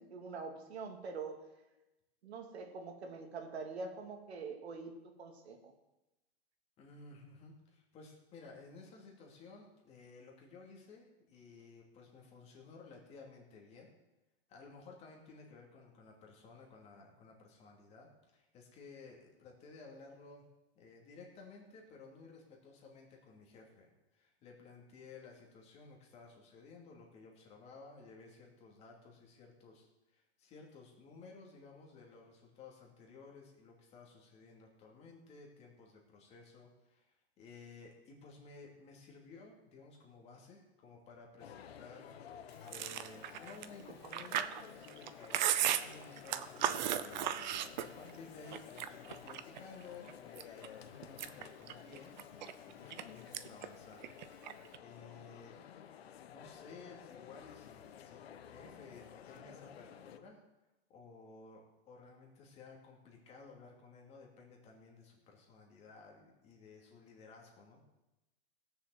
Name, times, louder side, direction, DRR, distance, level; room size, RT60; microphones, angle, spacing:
voice 1, 0.0-1.4 2.2-5.7, right 4 dB, 85° right, 4 dB, 2.8 m, -45 dB
voice 2, 6.8-13.9 14.5-18.1 18.3-20.4 20.8-29.9 30.1-45.4 45.7-52.1 52.6-54.0 54.8-55.5 56.3-60.4 60.9-67.8, left 4 dB, 20° left, -1 dB, 2.7 m, -55 dB
sound 1, 41.4-60.2, left 9 dB, 70° left, 1.2 m, -53 dB
Chewing mastication, 42.7-48.2 48.5-49.6 50.1-50.7 51.0-53.0 53.3-53.7 53.9-54.8, right 11 dB, 45° right, 0.8 m, -36 dB
17.5 x 7.1 x 7.8 m, 0.99 s
supercardioid pair, 165°, 31 cm